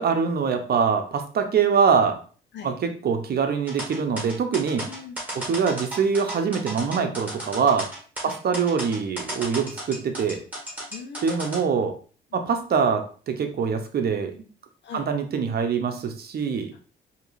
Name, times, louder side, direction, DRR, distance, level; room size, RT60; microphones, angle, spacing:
voice 1, 0.0-2.2 2.6-4.9 5.3-7.9 8.2-10.4 11.2-11.9 12.3-14.4 14.9-16.7, right 6 dB, 50° right, 6 dB, 0.8 m, -24 dB
sound 1, 3.7-11.6, right 1 dB, 10° right, 1.8 m, -34 dB
voice 2, 4.9-5.2 8.2-8.4 10.9-11.6 12.3-12.4 14.8-15.0, left 5 dB, 65° left, 4 dB, 0.9 m, -40 dB
4.7 x 2.9 x 2.6 m, 0.40 s
cardioid pair, 90°, 20 cm